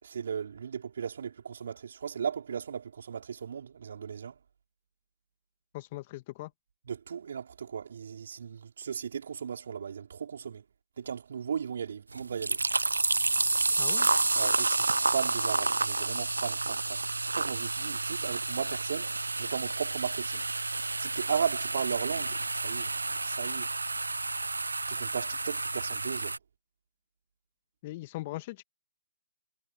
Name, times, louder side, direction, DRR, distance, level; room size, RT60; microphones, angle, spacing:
voice 1, 0.0-4.3 6.9-10.6 11.0-12.6 14.3-17.0 17.3-20.4 21.0-23.7 24.9-26.4, right 7 dB, 55° right, 4.9 m, -36 dB
voice 2, 5.7-6.5 13.8-14.1 27.8-28.6, left 18 dB, 30° left, 2.1 m, -39 dB
sound 1, 12.1-26.4, right 3 dB, 80° right, 0.6 m, -30 dB
figure-of-eight pair, 140°, 0 cm